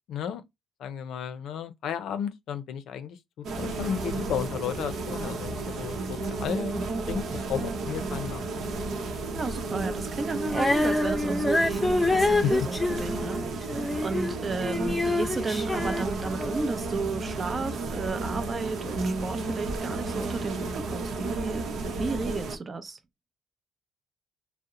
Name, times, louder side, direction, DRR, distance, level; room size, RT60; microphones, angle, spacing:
voice 1, 0.1-0.4 0.8-3.2 3.6-6.8 7.1-8.7 12.4-12.5, left 8 dB, 80° left, 0.5 m, -33 dB
sound 1, 3.4-22.6, right 3 dB, 75° right, 0.7 m, -32 dB
voice 2, 9.3-23.0, right 4 dB, 35° right, 0.6 m, -33 dB
Female singing, 10.5-14.3 14.6-16.7, left 2 dB, 10° left, 0.7 m, -27 dB
2.8 x 2.0 x 3.6 m
cardioid pair, 90°, 0 cm